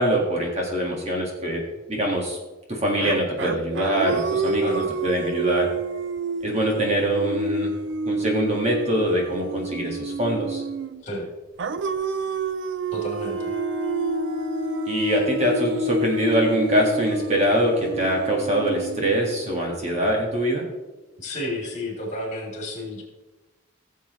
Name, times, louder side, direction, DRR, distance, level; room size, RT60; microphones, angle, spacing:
voice 1, 0.0-2.4 2.7-5.7 6.4-7.8 8.1-10.6 14.9-20.6, right 1 dB, 30° right, -1 dB, 1.7 m, -23 dB
sound 1, 3.0-11.0 11.6-19.7, right 4 dB, 60° right, 0.4 m, -30 dB
voice 2, 12.9-13.5 21.2-23.0, left 1 dB, 35° left, -1 dB, 3.1 m, -31 dB
sound 2, 13.1-20.6, left 4 dB, 10° left, 1.4 m, -33 dB
16.0 x 7.4 x 3.1 m, 1.1 s
head